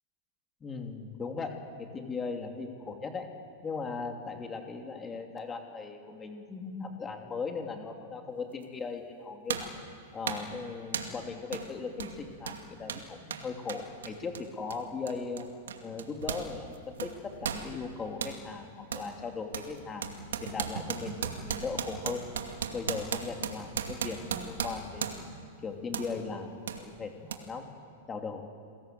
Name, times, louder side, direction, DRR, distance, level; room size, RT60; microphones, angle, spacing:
voice 1, 0.6-3.3 3.6-9.7 10.1-15.5 15.8-17.1 17.4-22.2 22.7-25.3 25.6-27.7 28.1-28.5, left 4 dB, 20° left, 3 dB, 2.9 m, -38 dB
sound 1, 8.6-8.7 9.5-9.8 10.3-10.5 10.9-11.2 11.5-11.7 12.0-16.5 16.7-18.4 18.9-19.1 19.5-25.4 25.9-26.1 26.7-26.8 27.3-27.4, right 7 dB, 85° right, 2.4 m, -36 dB
29.0 x 20.5 x 7.8 m, 2.2 s
hypercardioid pair, 115°, 0 cm